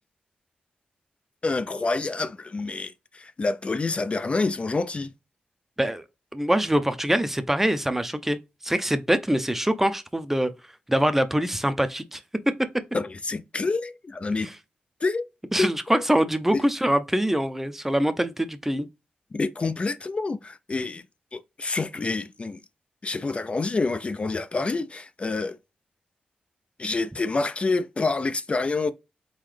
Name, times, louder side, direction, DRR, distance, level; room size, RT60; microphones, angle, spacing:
voice 1, 1.4-5.1 12.9-14.5 15.0-15.2 15.6-16.0 19.3-21.0 21.3-22.6 23.0-25.5 26.8-28.9, left 3 dB, 40° left, 0.4 m, -27 dB
voice 2, 6.3-8.4 8.6-10.5 10.9-12.2 14.4-14.6 15.5-18.9, right 1 dB, 10° right, 0.6 m, -24 dB
3.9 x 3.9 x 3.2 m
cardioid pair, 65°, 3 cm